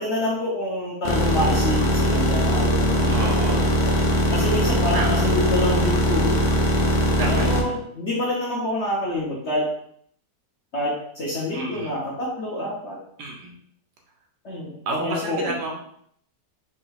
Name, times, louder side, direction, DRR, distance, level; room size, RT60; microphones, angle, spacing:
voice 1, 0.0-4.0 4.3-6.4 7.3-9.7 10.7-13.0 14.4-15.6, left 1 dB, 50° left, -5 dB, 0.9 m, -27 dB
sound 1, 1.1-7.6, equal, 70° left, 0.4 m, -21 dB
voice 2, 3.1-3.8 4.9-5.3 7.2-7.8 11.5-11.9 13.2-13.5 14.9-15.8, right 3 dB, 85° right, 0 dB, 1.3 m, -30 dB
4.8 x 3.4 x 2.3 m, 0.66 s
omnidirectional pair, 1.7 m